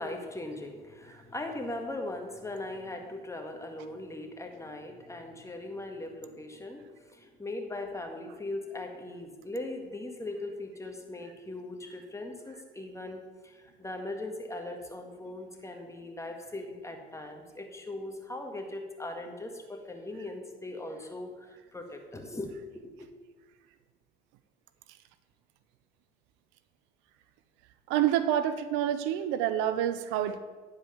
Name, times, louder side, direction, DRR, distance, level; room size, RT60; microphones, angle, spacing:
voice 1, 0.0-22.9, left 2 dB, 15° left, 3 dB, 1.8 m, -39 dB
voice 2, 27.9-30.4, right 11 dB, 80° right, 12 dB, 0.6 m, -27 dB
10.5 x 4.8 x 7.1 m, 1.4 s
hypercardioid pair, 60°, 20 cm